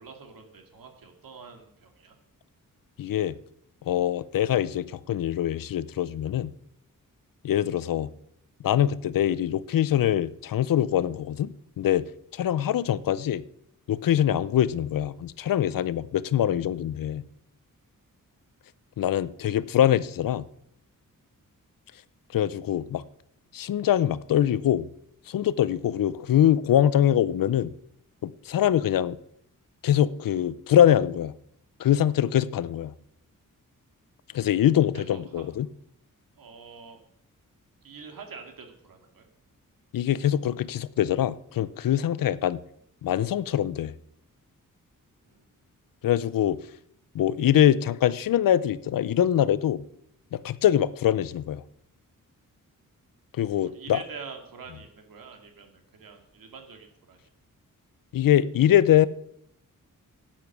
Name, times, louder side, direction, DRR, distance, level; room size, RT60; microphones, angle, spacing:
voice 1, 0.0-2.2 19.0-19.2 34.9-35.4 36.4-37.0 37.8-39.2 45.3-45.5 53.6-57.2, right 5 dB, 85° right, 2.3 m, -45 dB
voice 2, 3.0-3.3 3.9-6.5 7.4-8.1 8.6-12.0 12.3-13.4 13.9-17.2 19.0-20.4 22.3-23.0 23.5-24.9 25.3-27.7 28.2-29.2 29.8-31.3 31.8-32.9 34.3-35.7 39.9-42.6 43.0-43.9 46.0-46.6 47.1-49.8 50.3-51.6 53.3-54.0 58.1-59.1, left 11 dB, 80° left, 0.6 m, -23 dB
12.0 x 9.0 x 6.1 m
wide cardioid pair, 115°, 33 cm